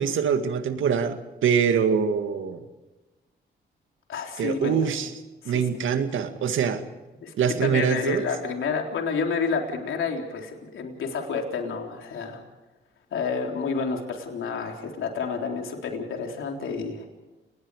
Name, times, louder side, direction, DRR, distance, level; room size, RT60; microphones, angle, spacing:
voice 1, 0.0-2.6 4.4-5.1 5.5-6.8 7.4-8.2, right 7 dB, 75° right, 8 dB, 2.0 m, -24 dB
voice 2, 4.1-4.9 5.4-5.6 5.9-6.0 7.2-12.4 13.1-17.0, left 5 dB, 80° left, 2 dB, 3.8 m, -30 dB
29.5 x 19.5 x 5.0 m, 1.1 s
cardioid pair, 70°, 20 cm